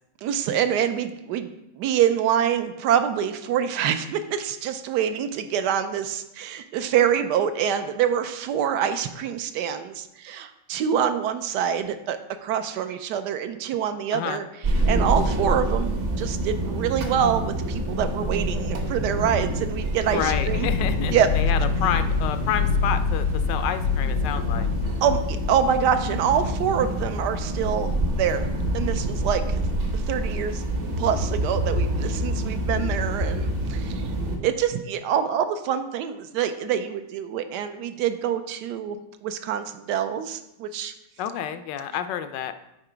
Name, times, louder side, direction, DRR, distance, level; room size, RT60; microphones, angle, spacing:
voice 1, 0.2-1.5 1.8-14.4 14.9-20.7 21.1-21.3 25.0-28.5 28.7-29.6 30.1-30.6 31.0-34.0 34.4-40.9, right 8 dB, 75° right, 9 dB, 1.2 m, -25 dB
sound 1, 14.6-34.4, right 1 dB, 45° right, 0.9 m, -27 dB
voice 2, 20.1-24.7 41.2-42.5, left 9 dB, 85° left, 10 dB, 1.2 m, -29 dB
sound 2, 20.3-28.7, left 5 dB, 70° left, 0.9 m, -27 dB
9.0 x 3.8 x 4.9 m, 0.87 s
omnidirectional pair, 1.9 m